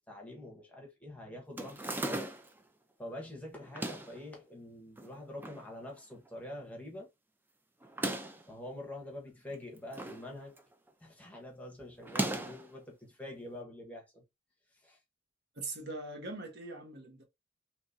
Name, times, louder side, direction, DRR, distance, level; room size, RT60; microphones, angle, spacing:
voice 1, 0.0-2.3 3.0-7.1 8.5-10.6 11.0-14.2 14.8-15.0, left 1 dB, 5° left, 0.9 m, -46 dB
sound 1, 1.6-2.6 3.6-4.2 5.0-5.6 6.0-6.1 6.3-6.4 7.8-8.5 9.5-10.3 10.6-10.9 12.0-12.7, right 1 dB, 10° right, 0.4 m, -37 dB
voice 2, 15.5-17.2, right 2 dB, 55° right, 1.0 m, -42 dB
3.5 x 2.9 x 2.6 m
head